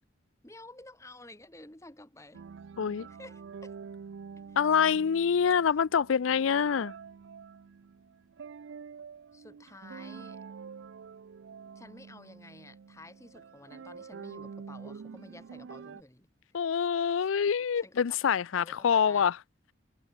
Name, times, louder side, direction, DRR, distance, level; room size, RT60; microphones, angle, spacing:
voice 1, 0.4-2.4 3.1-3.7 4.5-5.1 5.5-5.7 9.3-10.4 11.8-16.3 17.0-17.6 17.8-18.2 18.6-19.3, left 2 dB, 15° left, 2.0 m, -52 dB
sound 1, 2.3-16.0, right 6 dB, 75° right, 0.4 m, -47 dB
voice 2, 2.8-3.1 4.6-6.9 16.5-19.3, left 7 dB, 90° left, 0.4 m, -26 dB
head